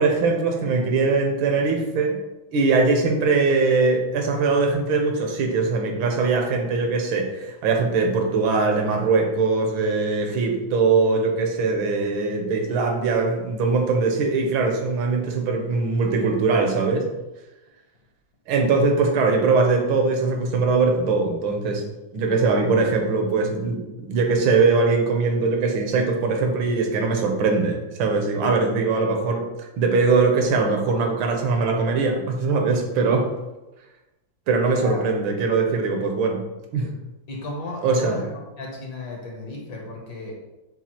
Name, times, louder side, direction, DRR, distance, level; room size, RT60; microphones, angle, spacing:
voice 1, 0.0-2.2 2.5-17.1 18.5-21.8 22.1-23.8 24.1-29.5 29.8-33.3 34.5-36.4 36.7-36.9 37.8-38.2, right 4 dB, 80° right, 3 dB, 1.5 m, -21 dB
voice 2, 34.7-35.3 37.3-38.3 38.6-40.3, left 2 dB, 65° left, -1 dB, 1.6 m, -34 dB
7.1 x 2.4 x 2.8 m, 1.0 s
omnidirectional pair, 2.2 m